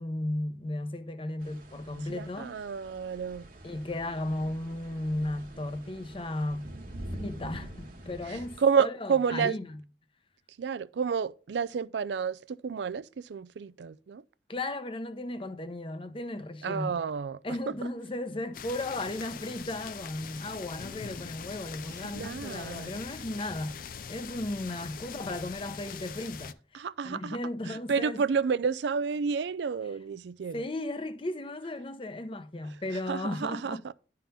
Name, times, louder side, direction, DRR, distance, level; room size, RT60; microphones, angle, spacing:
voice 1, 0.0-2.6 3.6-6.7 7.1-9.8 14.5-17.0 17.4-23.8 24.1-28.2 30.5-33.8, left 1 dB, 30° left, 0.7 m, -35 dB
sound 1, 1.4-8.6, right 1 dB, 50° right, 1.4 m, -45 dB
voice 2, 2.1-3.5 8.3-9.6 10.6-14.2 16.6-17.4 22.1-23.0 26.7-27.4 27.7-30.6 33.1-33.9, right 6 dB, 80° right, 0.4 m, -30 dB
sound 2, 18.5-26.5, left 7 dB, 55° left, 0.4 m, -42 dB
11.5 x 3.8 x 5.5 m
head